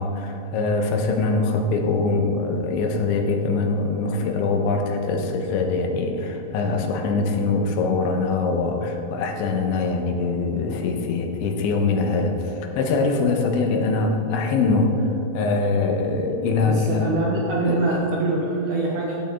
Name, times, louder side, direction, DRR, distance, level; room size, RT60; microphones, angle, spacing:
voice 1, 0.0-15.1 15.3-17.1 17.6-17.8, left 3 dB, 90° left, 3 dB, 3.3 m, -23 dB
voice 2, 16.6-19.1, right 2 dB, 80° right, -4 dB, 1.7 m, -24 dB
13.5 x 8.6 x 3.7 m, 2.8 s
omnidirectional pair, 5.1 m